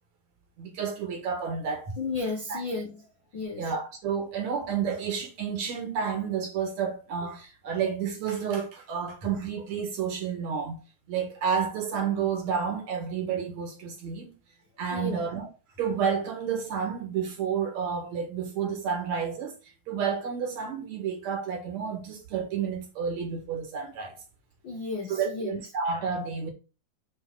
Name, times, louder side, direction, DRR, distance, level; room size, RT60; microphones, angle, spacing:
voice 1, 0.6-1.9 2.5-2.6 3.6-10.8 11.1-14.3 14.8-15.5 15.8-19.6 19.9-24.2 25.1-26.5, right 6 dB, 55° right, 2.9 m, -30 dB
voice 2, 2.0-3.0 3.3-3.6 14.9-15.2 24.6-25.6, left 3 dB, 65° left, 1.1 m, -33 dB
7.8 x 4.5 x 3.9 m
omnidirectional pair, 4.0 m